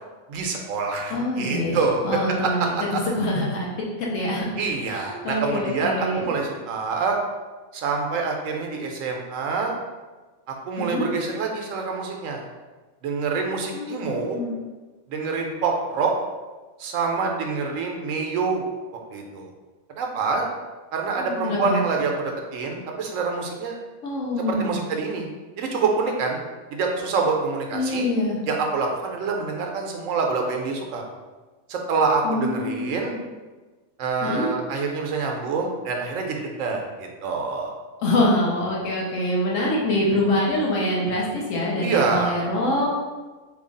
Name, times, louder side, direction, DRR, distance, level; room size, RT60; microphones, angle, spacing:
voice 1, 0.3-2.0 2.7-3.0 4.6-7.2 7.7-9.7 10.5-12.4 13.0-14.4 15.1-16.1 16.8-18.6 19.1-19.5 20.0-20.5 20.9-23.8 24.4-25.3 25.6-26.4 26.7-28.1 28.5-31.0 31.7-33.1 34.0-37.7 41.8-42.3, right 4 dB, 75° right, 2 dB, 0.9 m, -26 dB
voice 2, 1.1-1.8 2.0-3.7 4.1-4.4 4.9-6.3 10.8-11.1 13.7-14.5 21.2-21.8 24.0-24.8 27.7-28.4 32.2-32.9 34.2-34.5 38.0-42.9, left 1 dB, 75° left, -3 dB, 1.1 m, -25 dB
3.1 x 2.3 x 3.8 m, 1.3 s
omnidirectional pair, 1.4 m